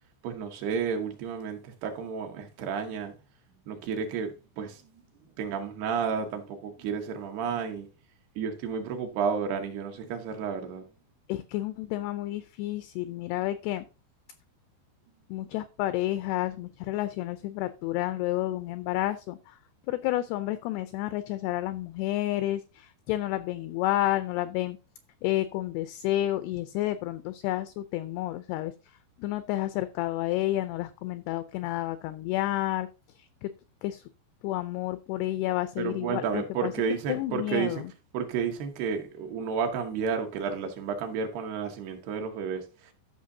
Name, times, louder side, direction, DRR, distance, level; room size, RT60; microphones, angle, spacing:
voice 1, 0.2-3.1 3.7-4.8 5.4-7.9 8.4-10.8 35.8-37.8 38.1-42.9, right 6 dB, 70° right, 2.9 m, -31 dB
voice 2, 11.3-13.9 15.3-19.6 19.9-24.8 25.2-28.7 29.2-32.9 33.2-33.5 33.8-34.0 34.4-36.7 37.1-37.9, left 15 dB, 90° left, 2.3 m, -30 dB
14.0 x 5.8 x 2.7 m
omnidirectional pair, 5.1 m